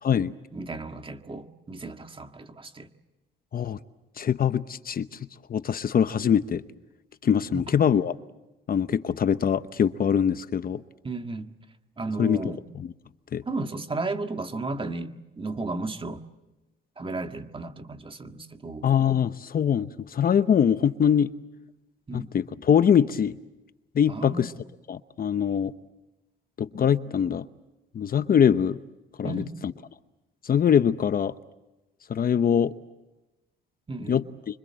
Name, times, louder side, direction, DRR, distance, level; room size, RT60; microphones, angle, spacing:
voice 1, 0.5-2.9 7.5-7.7 11.0-11.5 12.0-12.6 13.5-16.2 17.0-18.9 22.1-22.3 24.1-24.5 29.2-29.5 33.9-34.2, right 3 dB, 25° right, 6 dB, 1.8 m, -34 dB
voice 2, 4.2-5.1 5.5-6.6 7.2-8.2 8.7-10.8 12.2-12.4 13.3-13.4 18.8-21.3 22.1-23.3 23.9-24.5 24.9-25.7 26.6-27.4 27.9-28.8 29.2-29.4 30.4-31.3 32.1-32.7 34.1-34.2, left 8 dB, 50° left, 13 dB, 0.8 m, -23 dB
26.0 x 25.0 x 7.6 m, 1.0 s
cardioid pair, 90°, 20 cm